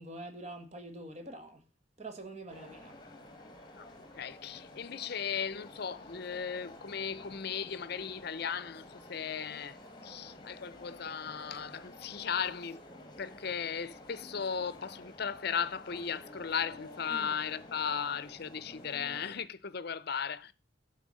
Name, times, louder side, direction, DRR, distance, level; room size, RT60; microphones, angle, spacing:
voice 1, 0.0-1.7 2.0-3.0 17.1-17.4, right 2 dB, 35° right, 1.5 m, -45 dB
sound 1, 2.5-19.4, left 1 dB, 20° left, 1.4 m, -51 dB
voice 2, 4.2-9.8 10.0-12.8 13.2-20.5, left 7 dB, 55° left, 0.6 m, -36 dB
11.5 x 4.5 x 6.3 m
head